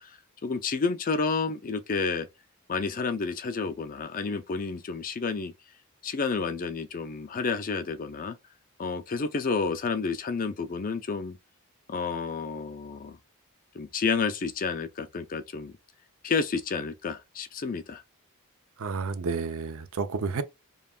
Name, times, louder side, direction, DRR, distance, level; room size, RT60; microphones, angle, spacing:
voice 1, 0.0-2.3 2.7-5.5 6.0-8.4 8.8-11.4 11.9-13.2 13.7-15.7 16.2-18.0, left 4 dB, 40° left, 0.5 m, -30 dB
voice 2, 18.8-20.4, right 4 dB, 65° right, 0.6 m, -30 dB
5.4 x 2.3 x 2.4 m
head